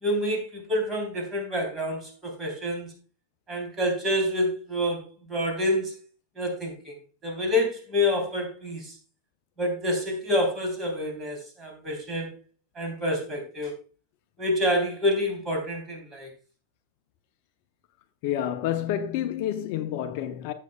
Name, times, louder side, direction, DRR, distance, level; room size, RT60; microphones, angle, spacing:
voice 1, 0.0-2.9 3.5-5.9 6.4-6.9 7.2-9.0 9.6-12.4 12.8-13.7 14.4-16.3, left 1 dB, 20° right, 3.5 m, -27 dB
voice 2, 18.2-20.5, left 11 dB, 45° left, 0.7 m, -29 dB
15.5 x 6.6 x 2.3 m
figure-of-eight pair, 90°, 0 cm